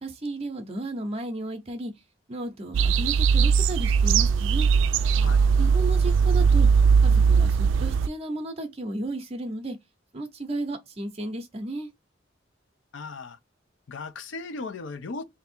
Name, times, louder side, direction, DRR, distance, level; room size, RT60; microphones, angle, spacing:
voice 1, 0.0-1.9 2.3-4.7 5.6-6.7 7.0-9.8 10.1-11.9, right 2 dB, 30° right, 0.6 m, -34 dB
sound 1, 2.7-8.1, right 6 dB, 80° right, 0.3 m, -20 dB
voice 2, 12.9-13.4 13.9-15.2, left 3 dB, 75° left, 0.5 m, -37 dB
3.5 x 2.6 x 4.1 m
head